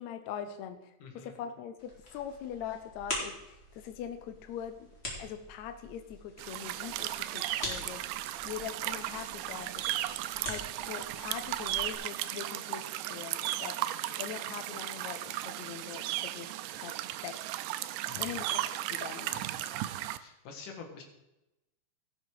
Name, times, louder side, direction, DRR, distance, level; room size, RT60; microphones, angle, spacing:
voice 1, 0.0-0.8 1.1-4.9 5.2-8.0 8.4-9.8 10.4-13.8 14.2-16.9 17.2-17.4 18.2-18.6 18.9-19.5, left 9 dB, 75° left, 8 dB, 1.8 m, -42 dB
voice 2, 1.0-1.3 18.1-18.4 20.2-21.0, left 4 dB, 90° left, 3 dB, 3.3 m, -46 dB
sound 1, 1.8-11.9, left 1 dB, 20° left, 2.9 m, -44 dB
sound 2, 6.4-20.2, right 14 dB, 85° right, 2.1 m, -36 dB
17.0 x 6.6 x 4.8 m, 0.95 s
omnidirectional pair, 3.6 m